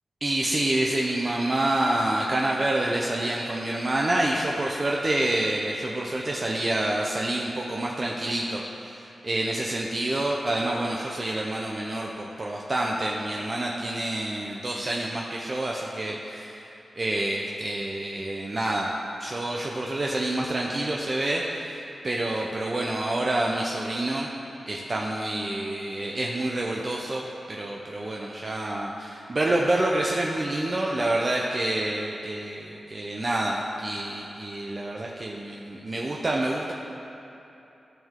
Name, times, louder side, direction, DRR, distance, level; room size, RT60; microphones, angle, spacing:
voice 1, 0.2-16.7 17.0-18.9 19.2-24.3 24.7-36.7, right 1 dB, 30° right, -2 dB, 0.6 m, -28 dB
15.0 x 5.5 x 3.7 m, 2.9 s
wide cardioid pair, 145°, 0 cm